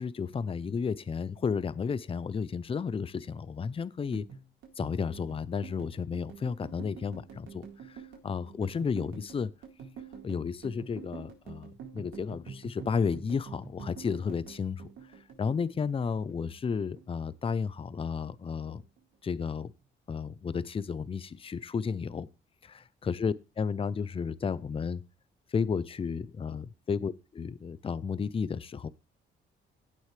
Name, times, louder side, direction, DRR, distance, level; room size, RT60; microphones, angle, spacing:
voice 1, 0.0-4.3 4.8-9.5 10.2-14.9 15.4-18.8 19.2-19.7 20.1-22.3 22.6-25.0 25.5-28.9, left 6 dB, 30° left, 0.5 m, -32 dB
sound 1, 4.1-16.5 16.8-17.9 18.1-18.5 18.8-19.5, right 6 dB, 85° right, 4.0 m, -47 dB
16.5 x 6.2 x 3.3 m
cardioid pair, 90°, 20 cm